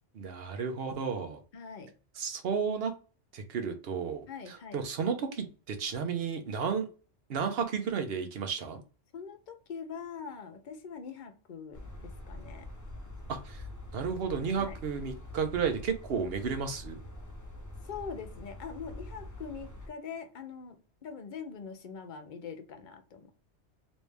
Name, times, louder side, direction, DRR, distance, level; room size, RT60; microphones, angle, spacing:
voice 1, 0.1-1.4 2.2-2.9 3.3-6.9 7.3-8.8 13.3-13.6 13.9-17.0, right 6 dB, 60° right, 6 dB, 0.9 m, -33 dB
voice 2, 1.5-1.9 4.3-4.8 9.1-12.7 14.6-14.8 17.8-23.3, left 6 dB, 50° left, 7 dB, 0.7 m, -43 dB
sound 1, 11.7-19.9, left 1 dB, 30° left, 0.3 m, -45 dB
3.1 x 2.7 x 3.2 m, 0.35 s
omnidirectional pair, 1.2 m